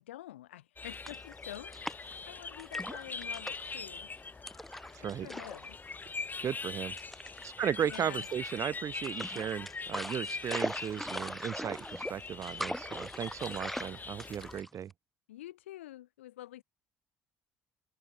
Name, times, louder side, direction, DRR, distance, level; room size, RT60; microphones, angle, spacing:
voice 1, 0.0-4.1 5.0-5.8 7.8-8.3 15.3-16.6, left 14 dB, 85° left, 0.9 m, -48 dB
sound 1, 0.8-14.6, left 4 dB, 30° left, 2.0 m, -42 dB
sound 2, 0.9-2.2 2.6-3.8 4.5-5.7 5.9-6.1 7.0-7.5 7.9-8.6 9.0-14.9, equal, 5° left, 0.7 m, -40 dB
voice 2, 4.9-5.3 6.4-7.0 7.4-14.9, right 9 dB, 50° right, 2.1 m, -36 dB
hypercardioid pair, 55°, 6 cm